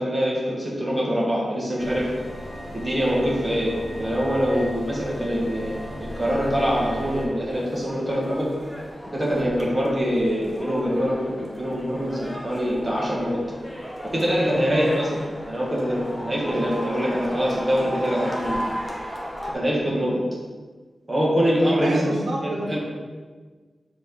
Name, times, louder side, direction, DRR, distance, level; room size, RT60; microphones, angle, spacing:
voice 1, 0.0-2.1 2.7-8.5 9.1-13.4 14.1-18.6 19.5-20.2 21.1-22.0 22.7-22.8, equal, 20° right, -6 dB, 1.7 m, -24 dB
sound 1, 1.8-7.3, equal, 35° left, 1.3 m, -36 dB
sound 2, 6.1-19.5, equal, 5° left, 0.9 m, -36 dB
voice 2, 21.8-22.8, right 2 dB, 80° right, -2 dB, 0.8 m, -28 dB
6.1 x 3.4 x 4.6 m, 1.4 s
wide cardioid pair, 120°, 0 cm